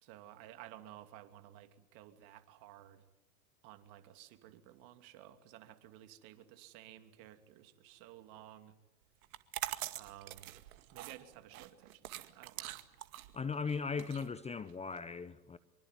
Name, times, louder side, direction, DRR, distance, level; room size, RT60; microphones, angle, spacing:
voice 1, 0.0-3.0 3.6-8.7 9.9-10.5 10.9-12.7, right 13 dB, 50° right, 2.9 m, -54 dB
sound 1, 9.2-15.0, right 16 dB, 65° right, 2.1 m, -44 dB
voice 2, 13.3-15.6, left 5 dB, 15° left, 0.9 m, -38 dB
25.0 x 24.0 x 9.4 m
hypercardioid pair, 110°, 46 cm